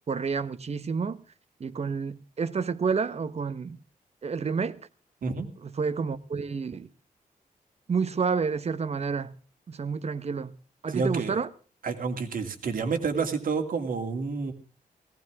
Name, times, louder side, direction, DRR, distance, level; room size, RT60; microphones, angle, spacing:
voice 1, 0.1-1.2 1.6-3.8 4.2-4.8 5.6-6.9 7.9-9.3 9.7-10.5 10.8-11.5, right 5 dB, 45° right, 1.1 m, -29 dB
voice 2, 10.9-11.4 11.8-14.5, right 4 dB, 65° right, 2.7 m, -29 dB
18.0 x 17.5 x 3.6 m
wide cardioid pair, 120°, 15 cm